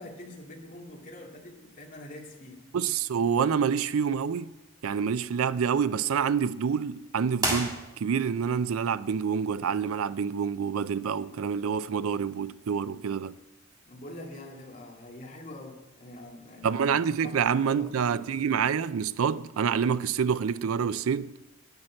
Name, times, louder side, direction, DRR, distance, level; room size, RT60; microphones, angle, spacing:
voice 1, 0.0-2.6 13.9-18.1, left 1 dB, 40° left, 2.3 m, -45 dB
voice 2, 2.7-4.5 4.8-13.4 16.6-21.3, right 7 dB, 80° right, 0.4 m, -27 dB
sound 1, 7.4-8.4, right 2 dB, 20° right, 1.8 m, -31 dB
10.5 x 9.8 x 7.6 m
head